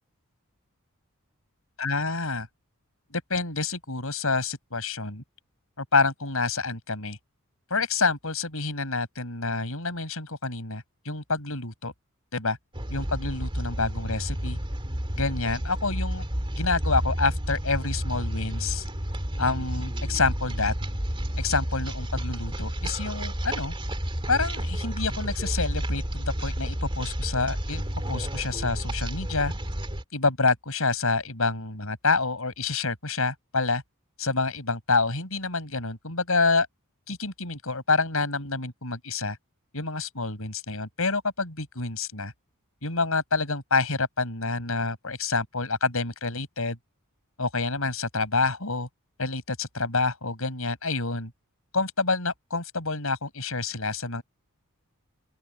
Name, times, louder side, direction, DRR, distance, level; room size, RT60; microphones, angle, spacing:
voice 1, 1.8-2.5 3.1-5.2 5.8-7.2 7.7-11.9 12.3-12.6 12.9-14.6 15.2-16.2 16.6-18.8 19.4-20.7 21.4-23.7 24.3-27.8 28.1-29.5 30.1-33.8 34.2-36.7 37.1-39.4 39.7-42.3 42.8-46.8 47.4-48.9 49.2-51.3 51.7-54.2, left 3 dB, 70° left, 7.8 m, -27 dB
sound 1, 12.7-30.0, equal, 25° right, 3.0 m, -31 dB
open air
head